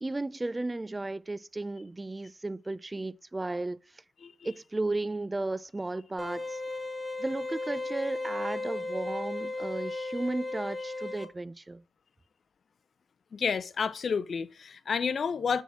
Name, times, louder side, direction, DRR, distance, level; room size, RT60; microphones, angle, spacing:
voice 1, 0.0-3.8 4.4-6.4 7.2-11.8, right 2 dB, 20° right, 0.3 m, -34 dB
voice 2, 4.2-4.5 9.9-10.1 13.3-15.6, left 6 dB, 55° left, 0.5 m, -31 dB
sound 1, 6.2-11.3, left 2 dB, 5° left, 1.2 m, -35 dB
7.0 x 3.7 x 6.1 m
cardioid pair, 80°, 0 cm